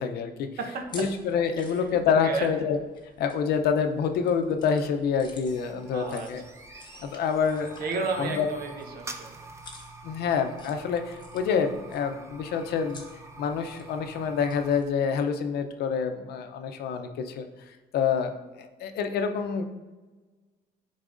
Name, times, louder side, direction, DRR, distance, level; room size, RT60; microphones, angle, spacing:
voice 1, 0.0-0.5 0.9-2.8 3.2-6.4 7.0-7.7 8.2-8.5 10.0-13.0 13.4-17.5 17.9-19.6, left 6 dB, 70° left, 7 dB, 0.6 m, -27 dB
voice 2, 0.6-1.1 1.7-1.8 2.1-2.5 5.9-6.9 7.8-9.4, right 4 dB, 65° right, 4 dB, 1.0 m, -33 dB
sound 1, 0.8-14.9, left 3 dB, 25° left, 1.1 m, -52 dB
sound 2, 5.1-14.7, right 3 dB, 15° right, 0.5 m, -46 dB
9.9 x 4.0 x 2.6 m, 1.3 s
cardioid pair, 110°, 17 cm